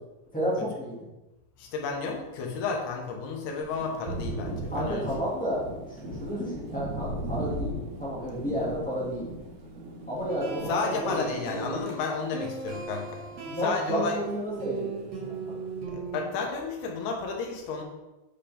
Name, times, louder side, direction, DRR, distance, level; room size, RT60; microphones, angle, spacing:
voice 1, 0.3-1.1 4.7-5.6 5.9-9.3 10.1-11.8 13.5-15.6, equal, 5° left, -7 dB, 0.7 m, -32 dB
voice 2, 1.6-5.0 10.7-13.2 13.6-14.2 15.9-17.8, left 4 dB, 90° left, 1 dB, 3.1 m, -32 dB
Thunder, 3.6-13.4 13.7-14.8, right 1 dB, 80° right, 3.2 m, -38 dB
sound 1, 10.3-16.4, right 5 dB, 55° right, 2.1 m, -37 dB
7.3 x 6.6 x 3.5 m, 1.0 s
omnidirectional pair, 4.4 m